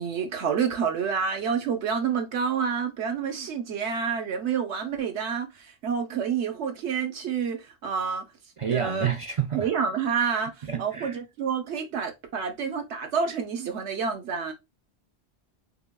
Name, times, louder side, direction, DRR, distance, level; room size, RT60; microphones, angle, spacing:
voice 1, 0.0-8.2 8.7-9.1 9.5-10.5 10.8-14.5, right 6 dB, 85° right, 1.1 m, -28 dB
voice 2, 8.6-9.7 10.7-11.2, right 8 dB, 60° right, 0.3 m, -29 dB
5.5 x 2.3 x 2.2 m
omnidirectional pair, 1.1 m